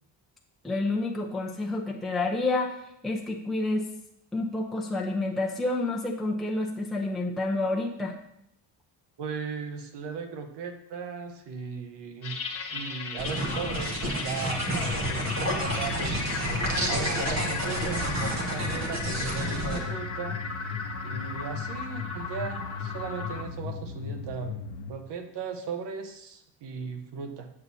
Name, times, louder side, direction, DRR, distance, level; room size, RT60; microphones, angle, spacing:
voice 1, 0.6-3.9 4.3-8.1, left 2 dB, ahead, -1 dB, 0.7 m, -29 dB
voice 2, 9.2-12.4 12.7-16.2 16.9-20.4 21.0-24.5 24.9-27.5, right 5 dB, 70° right, 7 dB, 1.1 m, -37 dB
sound 1, 12.2-23.4, left 4 dB, 30° left, 1.3 m, -36 dB
sound 2, 13.2-19.8, right 1 dB, 40° right, 1.5 m, -30 dB
sound 3, 14.5-24.9, left 5 dB, 70° left, 0.8 m, -37 dB
8.6 x 6.6 x 2.7 m, 0.78 s
cardioid pair, 100°, 43 cm